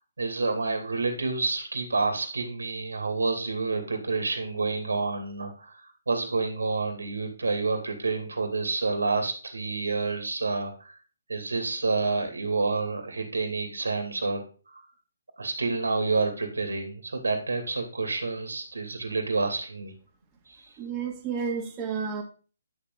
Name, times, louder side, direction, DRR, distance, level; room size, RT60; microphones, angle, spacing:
voice 1, 0.2-5.7 6.1-10.9 11.3-14.8 15.4-19.9, right 3 dB, 75° right, 5 dB, 2.7 m, -28 dB
voice 2, 20.8-22.2, right 6 dB, 20° right, 0 dB, 2.4 m, -31 dB
11.0 x 7.1 x 3.8 m, 0.37 s
figure-of-eight pair, 140°, 0 cm